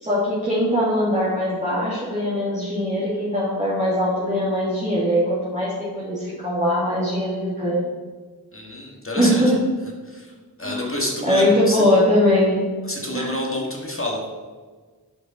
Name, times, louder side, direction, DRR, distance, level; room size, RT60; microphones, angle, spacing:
voice 1, 0.0-7.9 9.2-9.6 10.6-10.9 11.3-12.6 13.1-13.3, left 1 dB, 15° right, -10 dB, 2.3 m, -21 dB
voice 2, 8.5-9.6 10.1-10.3 10.6-11.8 12.8-14.2, left 1 dB, 30° left, -1 dB, 1.7 m, -28 dB
8.9 x 5.2 x 4.3 m, 1.5 s
wide cardioid pair, 45°, 40 cm